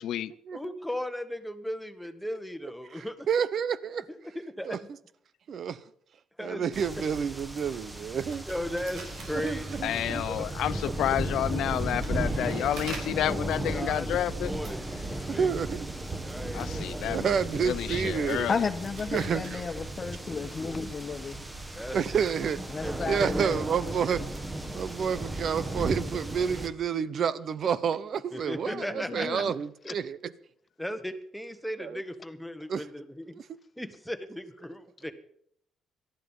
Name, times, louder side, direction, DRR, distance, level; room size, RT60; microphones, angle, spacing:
voice 1, 0.0-0.3 9.8-14.5 16.5-18.6, left 12 dB, 75° left, 0.7 m, -30 dB
voice 2, 0.5-3.3 4.1-4.8 6.4-6.6 8.5-10.5 13.7-14.1 14.5-15.5 16.2-17.2 19.0-19.4 21.7-22.0 22.8-23.2 28.3-29.4 29.8-29.9 30.8-33.4 33.8-35.1, equal, ahead, 1.4 m, -37 dB
voice 3, 3.0-4.1 4.6-4.8 5.5-5.8 6.4-8.4 9.3-10.2 15.3-15.9 17.1-18.5 19.1-19.6 21.9-22.6 23.1-24.2 24.7-30.3 31.8-32.0 32.7-32.8 33.3-33.4, right 7 dB, 50° right, 0.8 m, -29 dB
sound 1, 6.7-26.7, right 1 dB, 15° right, 1.7 m, -35 dB
sound 2, 8.3-10.4 11.0-19.5, right 3 dB, 75° right, 4.9 m, -48 dB
voice 4, 18.5-21.4 22.7-23.7 28.7-29.5, left 5 dB, 35° left, 1.3 m, -33 dB
18.5 x 12.5 x 5.5 m
cardioid pair, 120°, 0 cm